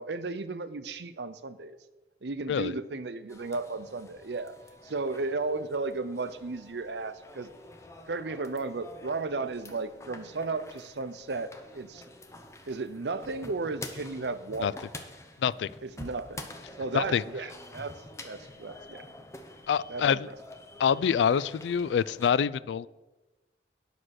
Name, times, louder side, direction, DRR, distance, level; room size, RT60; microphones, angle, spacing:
voice 1, 0.0-1.8 2.2-4.6 4.8-7.5 8.1-12.0 12.7-14.7 15.8-16.4 16.8-17.9 18.2-19.0 19.9-20.4, right 3 dB, 80° right, 12 dB, 0.6 m, -34 dB
sound 1, 3.3-22.3, left 1 dB, 15° left, 0.8 m, -48 dB
voice 2, 19.7-20.3 20.8-22.9, left 7 dB, 90° left, 19 dB, 0.3 m, -26 dB
9.9 x 6.1 x 6.4 m, 1.1 s
head